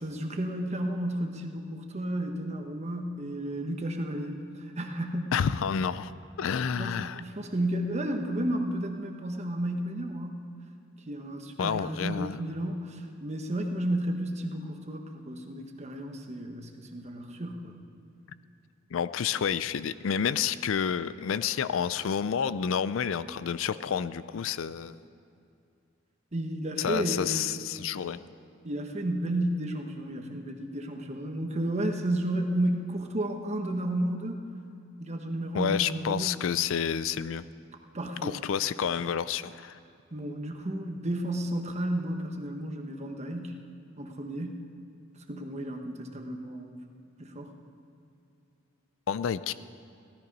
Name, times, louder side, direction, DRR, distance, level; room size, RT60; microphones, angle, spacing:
voice 1, 0.0-5.4 6.4-6.5 6.8-10.4 11.1-17.8 22.5-22.6 26.3-27.4 28.6-34.4 35.0-36.4 37.9-38.4 40.1-43.5 44.0-44.6 45.3-46.8 47.2-47.5, right 1 dB, 35° right, 4 dB, 1.1 m, -32 dB
voice 2, 5.3-6.1 6.4-7.2 11.6-12.4 18.9-25.0 26.8-28.3 35.5-37.4 38.2-39.8 49.1-49.5, left 7 dB, 70° left, 15 dB, 0.4 m, -29 dB
16.0 x 13.0 x 5.3 m, 2.5 s
head